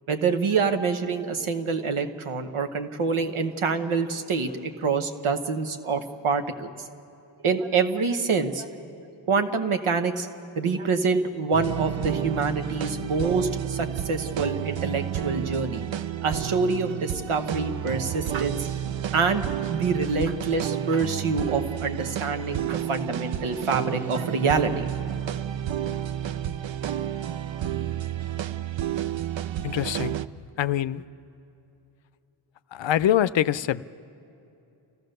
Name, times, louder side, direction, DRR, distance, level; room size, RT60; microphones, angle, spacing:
voice 1, 0.1-6.7 7.4-8.7 9.3-10.3 10.6-15.8 16.2-18.7 19.1-24.9, right 4 dB, 90° right, 7 dB, 1.2 m, -26 dB
sound 1, 11.5-30.3, right 11 dB, 70° right, 0.6 m, -31 dB
voice 2, 29.6-31.0 32.7-33.9, left 11 dB, 70° left, 16 dB, 0.5 m, -25 dB
29.5 x 15.0 x 6.6 m, 2.8 s
wide cardioid pair, 70°, 48 cm